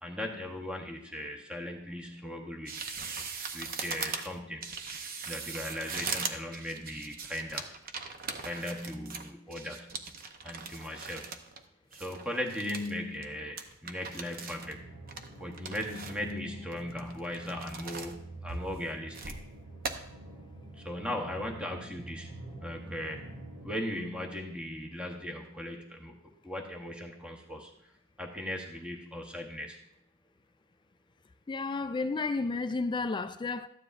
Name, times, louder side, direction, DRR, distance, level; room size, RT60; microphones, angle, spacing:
voice 1, 0.0-2.7 3.5-4.7 5.3-7.7 8.4-9.9 10.4-11.3 11.9-14.9 15.4-18.2 18.4-19.4 20.8-22.4 22.6-23.3 23.6-26.1 26.4-27.7 28.2-29.8, left 1 dB, 5° right, 0.9 m, -38 dB
sound 1, 2.7-11.6 11.9-12.9 13.2-13.3 13.6-14.7 15.1-16.3 16.7-18.1 18.5-19.4 19.8-19.9, right 5 dB, 40° right, 0.7 m, -40 dB
sound 2, 14.6-23.7, right 2 dB, 60° right, 2.7 m, -47 dB
voice 2, 31.5-33.7, left 3 dB, 20° left, 0.3 m, -32 dB
13.0 x 9.6 x 2.5 m
head